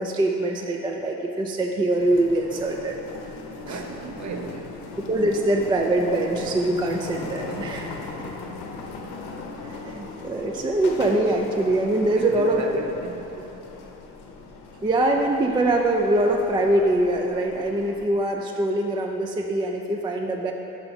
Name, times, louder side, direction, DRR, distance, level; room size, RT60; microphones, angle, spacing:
voice 1, 0.0-3.0 3.7-3.8 5.0-7.9 9.6-12.6 14.8-20.5, right 1 dB, 15° right, 2 dB, 0.3 m, -23 dB
sound 1, 2.0-18.0, left 3 dB, 65° left, 0.8 m, -38 dB
voice 2, 3.6-4.8 7.5-7.9 12.2-13.2, right 4 dB, 40° right, 4 dB, 0.6 m, -35 dB
5.6 x 4.5 x 4.0 m, 2.9 s
hypercardioid pair, 60°, 42 cm